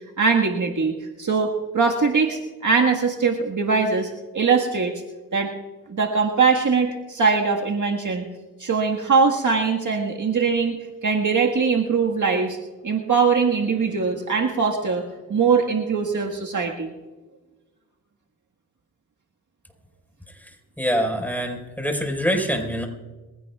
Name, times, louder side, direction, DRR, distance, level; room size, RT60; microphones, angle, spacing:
voice 1, 0.2-5.0 5.3-5.5 5.9-8.3 8.6-12.6 12.8-16.9, right 5 dB, 50° right, 1 dB, 1.7 m, -22 dB
voice 2, 20.8-22.9, equal, 5° left, 3 dB, 4.8 m, -24 dB
23.0 x 16.5 x 2.4 m, 1.2 s
supercardioid pair, 50°, 40 cm